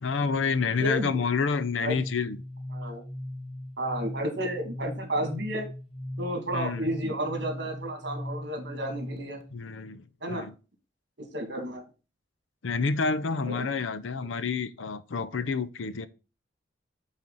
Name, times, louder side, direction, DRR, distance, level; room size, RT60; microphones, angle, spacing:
voice 1, 0.0-2.4 6.5-6.9 9.5-10.0 10.3-10.5 12.6-16.1, left 5 dB, 80° left, 0.6 m, -28 dB
voice 2, 0.8-1.2 1.8-2.0 2.7-3.0 3.8-5.7 6.2-9.4 10.2-10.4 11.3-11.8 13.4-13.7 14.2-14.3, right 1 dB, 60° right, 2.0 m, -32 dB
sound 1, 2.0-9.5, left 1 dB, 30° left, 0.8 m, -39 dB
7.6 x 4.1 x 4.0 m
head